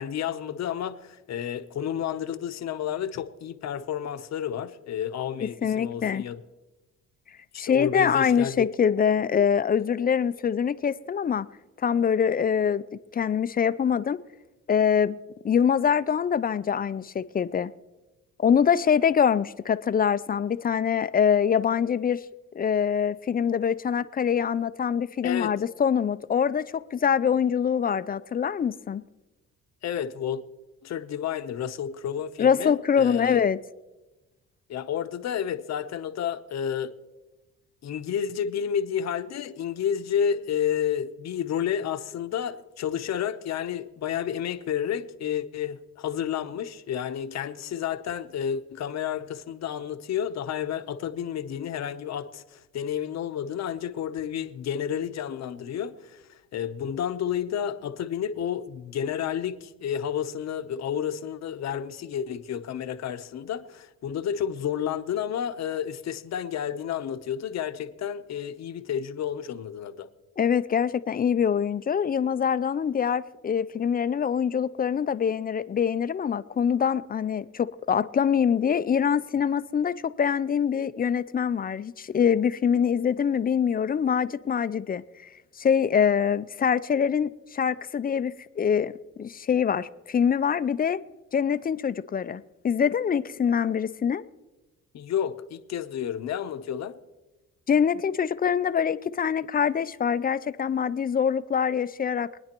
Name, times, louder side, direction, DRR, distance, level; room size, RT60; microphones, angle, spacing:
voice 1, 0.0-6.4 7.5-8.7 25.2-25.5 29.8-30.4 30.8-33.4 34.7-36.9 37.8-70.1 94.9-97.0, left 9 dB, 60° left, 0.8 m, -31 dB
voice 2, 5.4-6.2 7.6-11.5 11.8-12.8 13.1-14.2 14.7-15.2 15.4-17.7 18.4-22.2 22.5-29.0 32.4-33.6 70.4-85.0 85.6-88.9 89.2-91.0 91.3-94.2 97.7-102.3, left 7 dB, 30° left, 0.4 m, -24 dB
23.5 x 9.8 x 3.0 m
cardioid pair, 90°, 30 cm